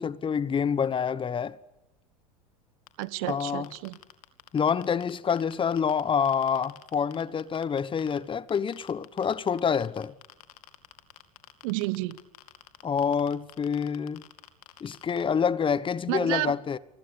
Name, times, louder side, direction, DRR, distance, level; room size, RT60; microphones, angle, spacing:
voice 1, 0.0-1.6 3.3-3.7 4.5-10.1 12.8-14.2 14.8-16.8, left 7 dB, 25° left, 1.2 m, -27 dB
sound 1, 2.9-6.0 6.3-8.2 8.5-15.2, left 14 dB, 75° left, 2.4 m, -48 dB
voice 2, 3.0-4.0 11.6-12.2 16.1-16.5, right 20 dB, 65° right, 1.3 m, -30 dB
28.0 x 20.5 x 8.3 m
hypercardioid pair, 85°, 19 cm